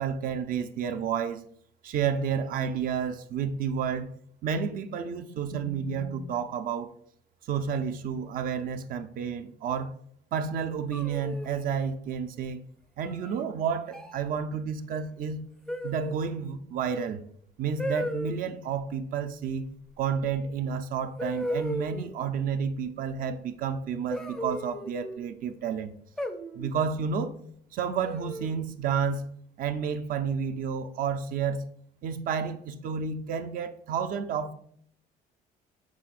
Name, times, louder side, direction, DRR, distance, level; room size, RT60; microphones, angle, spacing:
voice 1, 0.0-1.4 1.8-4.1 4.4-6.9 7.5-9.9 10.3-12.6 13.0-15.4 15.8-17.2 17.6-19.7 20.0-25.9 26.6-27.3 27.7-31.7 32.0-34.5, right 6 dB, 55° right, 0.5 m, -30 dB
sound 1, 10.9-11.8 13.0-13.4 13.9-14.2 15.7-16.3 17.8-18.4 20.3-20.4 21.2-22.2 24.1-25.2 26.2-26.8 28.0-28.6, equal, 5° left, 0.4 m, -35 dB
6.2 x 3.5 x 2.4 m
cardioid pair, 110°, 17 cm